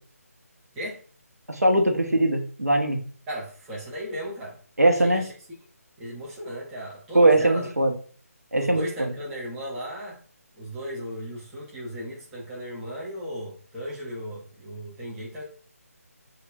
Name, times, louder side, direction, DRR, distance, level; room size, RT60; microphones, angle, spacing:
voice 1, 1.5-3.0 4.8-5.3 7.1-7.9 8.5-9.1, right 1 dB, 80° right, 2 dB, 0.9 m, -21 dB
voice 2, 3.3-4.6 4.8-5.3 6.0-7.7 8.5-10.2 10.5-15.4, equal, 5° right, -6 dB, 0.4 m, -36 dB
6.3 x 2.5 x 2.4 m, 0.43 s
figure-of-eight pair, 155°, 8 cm